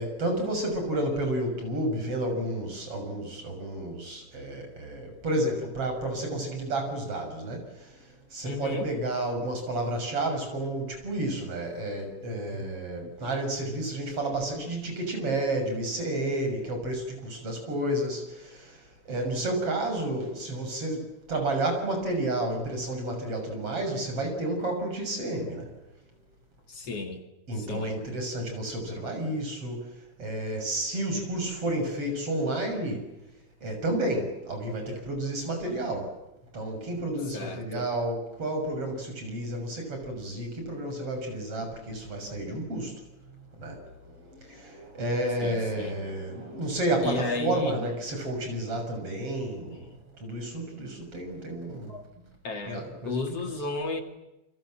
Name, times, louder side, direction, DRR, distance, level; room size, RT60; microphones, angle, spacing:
voice 1, 0.0-7.9 8.3-18.7 19.1-21.0 21.3-25.7 27.5-29.9 30.2-33.0 33.6-36.1 36.5-42.9 43.6-43.8 44.1-49.8 50.2-51.9 52.7-53.2, right 1 dB, 50° right, 4 dB, 7.4 m, -31 dB
voice 2, 8.4-8.9 12.6-12.7 26.7-27.2 27.6-28.0 37.3-37.9 45.4-46.0 47.0-47.8 51.9-52.0 52.4-54.0, left 3 dB, 55° left, 5 dB, 3.3 m, -34 dB
28.5 x 26.5 x 7.7 m, 0.94 s
omnidirectional pair, 3.5 m